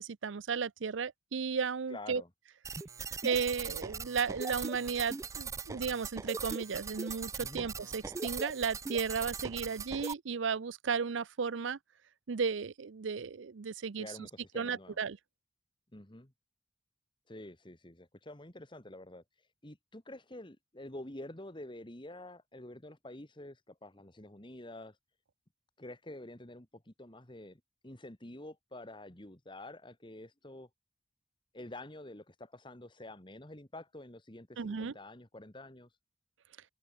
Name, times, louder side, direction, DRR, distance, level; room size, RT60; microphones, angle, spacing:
voice 1, 0.0-2.2 3.2-11.8 12.3-14.1 14.5-15.2 34.6-34.9, right 6 dB, 85° right, 0.6 m, -34 dB
voice 2, 1.9-2.3 7.4-7.7 14.0-15.0 15.9-16.3 17.3-25.0 25.8-30.7 31.5-36.0, left 1 dB, 25° left, 2.0 m, -48 dB
sound 1, 2.6-10.1, right 4 dB, 15° right, 0.3 m, -40 dB
head